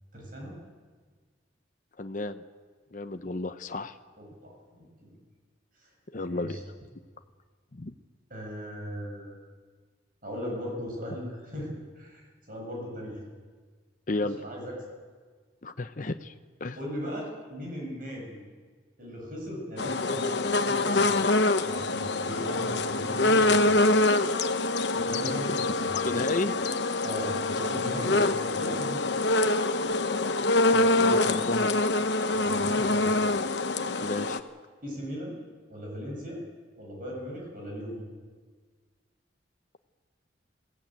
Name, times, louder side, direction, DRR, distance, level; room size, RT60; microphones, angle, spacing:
voice 1, 0.1-0.6 4.2-5.2 5.8-5.9 6.2-6.6 8.3-9.4 10.2-13.2 14.1-14.8 16.8-18.4 19.0-21.3 21.6-23.8 24.9-25.9 27.0-29.3 32.3-33.1 34.8-35.4 35.7-36.4 36.8-38.0, equal, 50° right, -1 dB, 7.4 m, -38 dB
voice 2, 2.0-2.4 2.9-4.0 6.1-6.6 7.7-7.9 14.1-14.4 15.6-16.3 16.6-16.8 26.0-26.5 30.7-31.7 34.0-34.4, left 2 dB, 45° left, 8 dB, 0.8 m, -32 dB
sound 1, 19.8-34.4, left 2 dB, 65° left, 1.0 m, -25 dB
22.0 x 16.0 x 9.0 m, 1.5 s
head